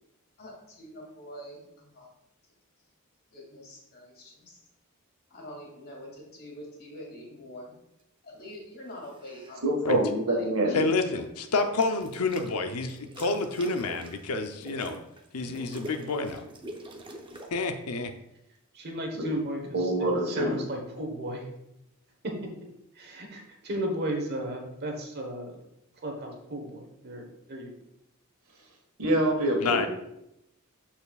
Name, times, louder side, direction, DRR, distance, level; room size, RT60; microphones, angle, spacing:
voice 1, 0.4-2.1 3.3-4.6 5.3-7.8 8.2-9.7 10.3-10.8 11.1-11.2, equal, 45° left, -2 dB, 2.4 m, -45 dB
sound 1, 8.9-9.6 11.5-12.5 12.9-17.5, right 1 dB, 20° right, 0.7 m, -45 dB
voice 2, 9.6-10.8 19.7-20.6 29.0-29.9, right 1 dB, 65° right, 0 dB, 1.6 m, -25 dB
voice 3, 10.7-15.0 15.3-16.4 17.5-18.1 29.6-29.9, left 3 dB, 85° left, 7 dB, 0.7 m, -28 dB
voice 4, 18.7-19.8 20.3-21.4 22.9-25.6 26.0-27.7, right 1 dB, 50° right, 2 dB, 1.2 m, -34 dB
12.0 x 4.4 x 2.4 m, 0.83 s
head